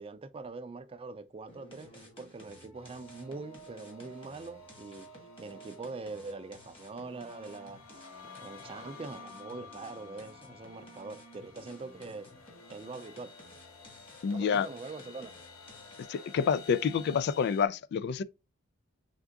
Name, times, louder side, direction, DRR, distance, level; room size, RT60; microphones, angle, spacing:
voice 1, 0.0-7.8 8.3-12.3 12.7-13.3 14.3-15.3, right 3 dB, 25° right, 0.4 m, -43 dB
sound 1, 1.5-16.3, equal, 25° left, 1.5 m, -55 dB
sound 2, 2.7-17.7, left 4 dB, 90° left, 0.8 m, -52 dB
voice 2, 14.2-14.7 16.1-18.2, left 6 dB, 55° left, 0.3 m, -28 dB
3.7 x 3.6 x 3.4 m
head